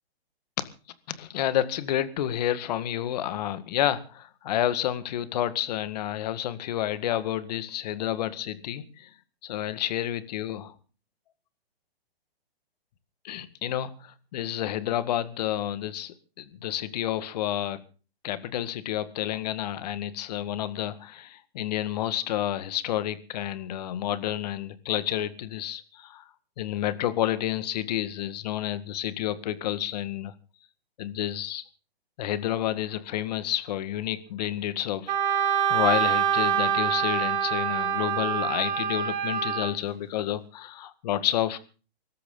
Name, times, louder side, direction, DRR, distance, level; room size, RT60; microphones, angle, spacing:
voice 1, 1.1-9.1 9.4-10.7 13.2-17.8 18.2-26.2 26.6-30.3 31.0-31.7 32.2-41.6, left 12 dB, 40° left, 14 dB, 1.8 m, -30 dB
Wind instrument woodwind instrument, 35.1-39.7, right 9 dB, 50° right, 4.5 m, -25 dB
23.5 x 13.5 x 4.0 m, 0.36 s
hypercardioid pair, 155°, 31 cm